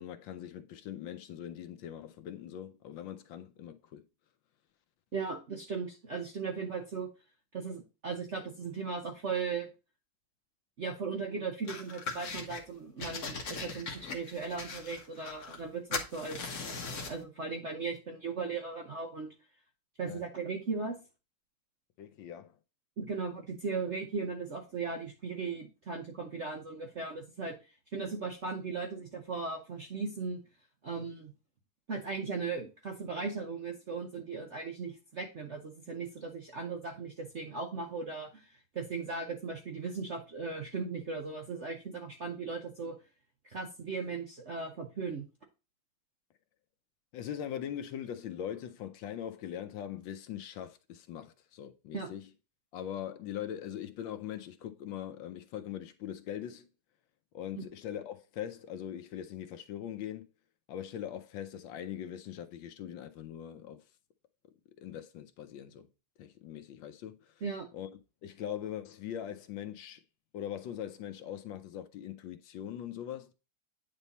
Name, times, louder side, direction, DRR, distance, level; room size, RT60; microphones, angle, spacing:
voice 1, 0.0-4.0 20.1-20.2 22.0-22.6 47.1-52.3 52.7-56.7 57.3-60.3 60.7-63.8 64.8-65.9 66.2-67.3 67.7-67.9 68.2-70.0 70.3-73.3, left 10 dB, 75° left, 1.3 m, -41 dB
voice 2, 5.1-7.1 7.5-9.7 10.8-16.7 17.1-19.3 20.0-21.0 23.0-27.5 27.9-30.4 30.8-31.3 31.9-43.0 43.4-45.3 51.9-52.1 57.5-57.6 67.4-67.7, right 4 dB, 55° right, 0.8 m, -37 dB
sound 1, 11.7-12.6 13.0-15.7 15.9-17.2, left 4 dB, 50° left, 1.5 m, -39 dB
9.1 x 3.6 x 4.1 m
omnidirectional pair, 2.3 m